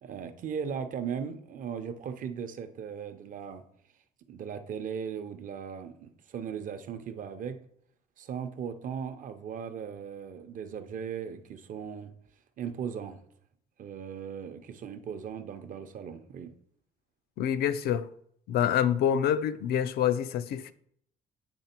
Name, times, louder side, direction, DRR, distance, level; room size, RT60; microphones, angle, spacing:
voice 1, 0.0-3.6 4.3-7.6 8.2-12.1 12.6-13.2 13.8-16.5, right 7 dB, 50° right, 0.7 m, -38 dB
voice 2, 17.4-18.1 18.5-20.7, left 9 dB, 70° left, 0.4 m, -26 dB
8.0 x 3.3 x 4.4 m
cardioid pair, 110°, 17 cm